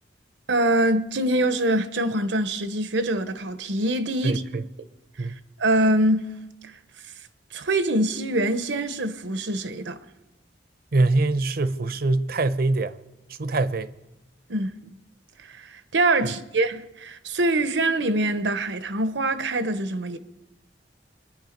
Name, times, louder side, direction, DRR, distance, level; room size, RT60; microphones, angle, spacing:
voice 1, 0.5-4.4 5.2-5.3 5.6-6.7 7.5-10.0 14.5-14.8 15.5-20.2, right 1 dB, 85° right, 1.0 m, -24 dB
voice 2, 4.2-4.6 5.2-5.4 10.9-13.0 13.4-13.9, right 2 dB, 55° right, 0.7 m, -23 dB
24.0 x 10.0 x 5.2 m
head